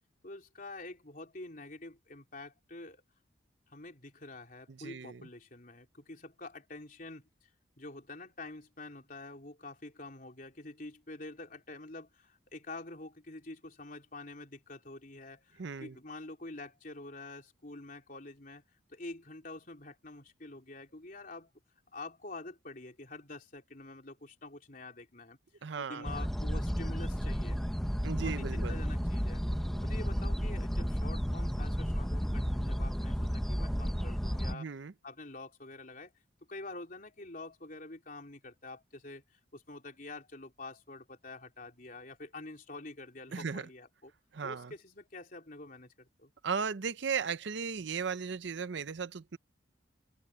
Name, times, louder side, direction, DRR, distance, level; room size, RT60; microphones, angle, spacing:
voice 1, 0.2-3.0 3.7-7.3 7.8-18.6 18.9-21.5 21.9-25.4 25.8-27.6 28.1-29.4 29.7-34.7 35.0-36.1 36.5-44.1 44.4-46.3, left 2 dB, 45° left, 3.7 m, -47 dB
voice 2, 4.7-5.2 15.6-15.9 25.6-26.1 28.0-28.8 34.5-34.9 43.3-43.7 44.3-44.7 46.4-49.4, right 6 dB, 65° right, 0.6 m, -36 dB
sound 1, 26.0-34.5, equal, ahead, 0.9 m, -32 dB
open air
head